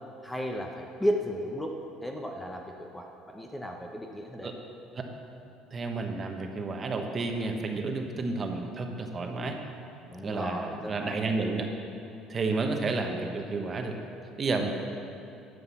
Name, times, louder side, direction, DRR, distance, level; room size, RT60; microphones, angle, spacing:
voice 1, 0.2-1.8 2.0-4.5 10.1-11.3, equal, 5° left, 2 dB, 0.7 m, -34 dB
voice 2, 5.7-9.6 10.2-11.7 12.3-14.0 14.4-14.7, right 3 dB, 25° right, 4 dB, 1.0 m, -31 dB
11.5 x 7.9 x 7.1 m, 2.7 s
cardioid pair, 150°, 0 cm